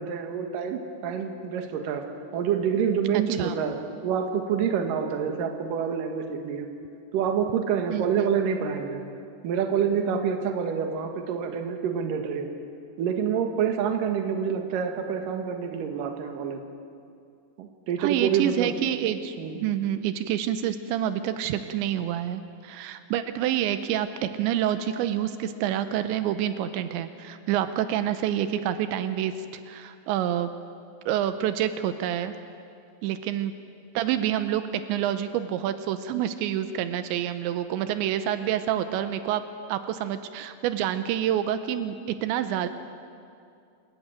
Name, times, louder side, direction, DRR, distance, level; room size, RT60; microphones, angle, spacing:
voice 1, 0.0-2.0 2.3-3.8 4.0-6.7 7.1-9.0 9.4-12.5 13.0-16.6 17.6-18.7 19.4-19.5, right 7 dB, 60° right, 4 dB, 2.8 m, -27 dB
voice 2, 3.1-3.6 7.9-8.3 18.0-29.3 29.7-30.5 31.1-32.3 33.0-33.5 33.9-34.6 34.9-39.4 39.7-42.7, right 11 dB, 85° right, 10 dB, 3.0 m, -27 dB
28.0 x 14.5 x 9.0 m, 2.4 s
omnidirectional pair, 5.2 m